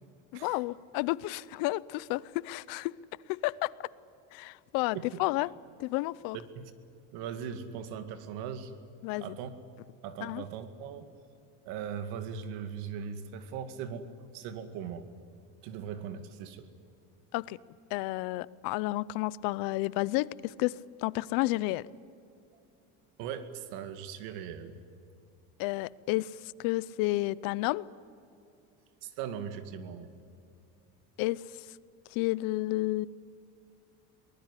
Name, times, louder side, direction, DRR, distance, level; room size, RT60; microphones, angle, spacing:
voice 1, 0.3-2.9 3.3-3.9 4.3-5.5 5.8-6.4 9.0-9.4 10.2-10.4 17.3-17.6 17.9-20.7 21.0-21.8 25.6-26.3 26.6-27.8 31.2-31.4 32.1-33.1, left 19 dB, 65° left, 21 dB, 0.7 m, -31 dB
voice 2, 7.1-8.7 9.2-9.5 10.0-11.0 11.7-14.1 14.3-15.0 15.6-16.7 23.2-24.8 29.0-30.1, right 7 dB, 75° right, 10 dB, 2.2 m, -39 dB
23.5 x 20.0 x 9.8 m, 2.6 s
cardioid pair, 175°, 37 cm